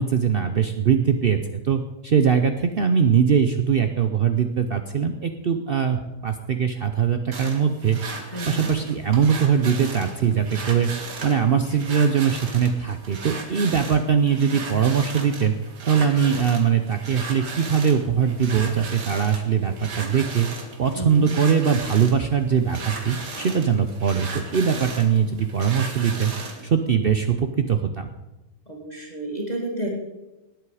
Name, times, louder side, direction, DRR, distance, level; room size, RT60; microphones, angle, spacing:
voice 1, 0.0-1.4 1.6-8.0 8.4-10.9 11.2-15.5 15.8-20.5 20.8-26.3 26.6-28.1, right 7 dB, 55° right, 7 dB, 0.6 m, -21 dB
sound 1, 7.3-26.7, right 3 dB, 80° right, 2.2 m, -36 dB
voice 2, 8.3-8.7 20.9-21.3 28.7-29.9, right 1 dB, 25° left, -2 dB, 2.2 m, -31 dB
19.0 x 8.0 x 4.8 m, 1.1 s
omnidirectional pair, 1.7 m